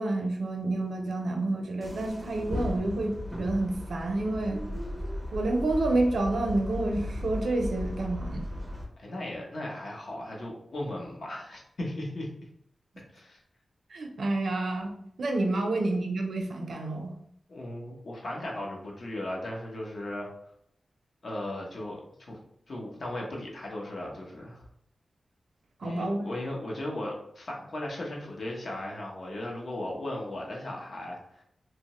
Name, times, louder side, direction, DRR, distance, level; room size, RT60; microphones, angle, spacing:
voice 1, 0.0-4.6 5.3-8.5 13.9-14.9 15.2-17.1 25.8-26.2, right 2 dB, 75° right, 2 dB, 0.4 m, -29 dB
sound 1, 1.8-8.8, left 1 dB, 5° right, 0.5 m, -36 dB
voice 2, 9.0-12.3 13.1-13.4 17.5-20.3 21.2-22.4 22.7-24.7 25.8-31.4, left 1 dB, 60° left, -1 dB, 0.7 m, -36 dB
2.7 x 2.1 x 2.9 m, 0.70 s
wide cardioid pair, 125°, 0 cm